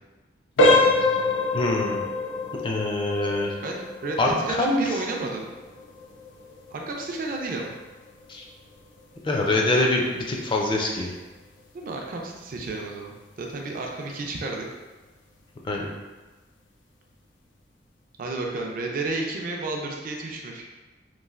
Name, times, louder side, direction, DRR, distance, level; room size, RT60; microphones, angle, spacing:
sound 1, 0.6-11.2 11.6-11.8 12.4-12.5 13.0-13.2, left 2 dB, 90° left, 0.4 m, -27 dB
voice 1, 1.5-2.0 2.6-3.5 4.2-4.8 8.3-8.4 9.2-11.1 15.7-15.9, left 2 dB, 25° left, 0 dB, 0.4 m, -24 dB
voice 2, 3.6-5.5 6.7-7.7 11.7-14.7 18.2-20.6, right 2 dB, 50° right, 0 dB, 0.4 m, -32 dB
3.1 x 2.4 x 2.4 m, 1.2 s
head